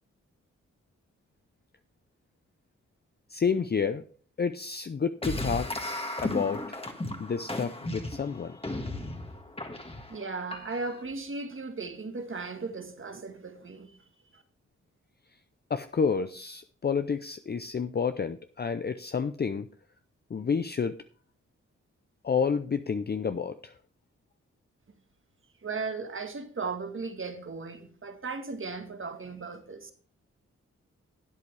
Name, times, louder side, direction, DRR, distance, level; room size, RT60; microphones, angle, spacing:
voice 1, 3.3-4.0 4.4-6.8 7.2-8.6 15.7-19.7 20.3-21.0 22.2-23.7, left 6 dB, 35° left, 0.6 m, -30 dB
sound 1, 5.2-11.0, left 1 dB, 20° left, 1.7 m, -35 dB
voice 2, 10.1-14.1 14.3-14.4 25.6-29.9, right 4 dB, 45° right, 1.7 m, -36 dB
12.0 x 8.3 x 3.3 m
cardioid pair, 50°, 29 cm